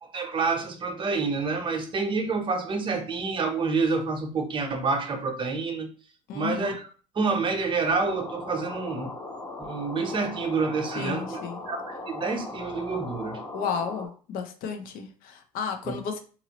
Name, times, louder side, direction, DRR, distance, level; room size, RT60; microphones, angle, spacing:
voice 1, 0.0-5.9 6.3-6.8 7.1-9.1 9.6-11.4 11.7-11.8 12.1-13.4 15.8-16.0, right 4 dB, 30° right, 4 dB, 0.8 m, -28 dB
voice 2, 6.3-6.8 10.9-11.6 13.5-16.2, left 6 dB, 60° left, 6 dB, 0.7 m, -33 dB
sound 1, 7.9-14.1, left 2 dB, 25° left, 1.0 m, -38 dB
2.9 x 2.6 x 2.9 m, 0.38 s
supercardioid pair, 95°, 17 cm